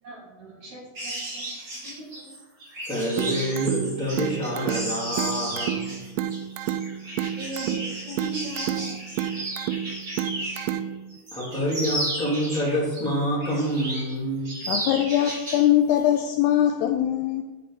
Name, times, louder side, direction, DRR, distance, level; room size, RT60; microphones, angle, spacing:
voice 1, 0.0-1.5 1.7-2.3 7.4-9.0, right 2 dB, 50° right, 2.5 m, -39 dB
sound 1, 0.9-10.8 11.1-13.0 13.4-14.1 14.4-15.7 16.0-16.2, right 1 dB, 25° right, 3.1 m, -34 dB
voice 2, 2.8-6.0 11.3-14.5, equal, ahead, 1.8 m, -27 dB
sound 2, 3.2-11.2, right 10 dB, 90° right, 2.8 m, -31 dB
voice 3, 14.7-17.4, left 11 dB, 80° left, 2.4 m, -22 dB
10.0 x 8.3 x 4.1 m
omnidirectional pair, 5.1 m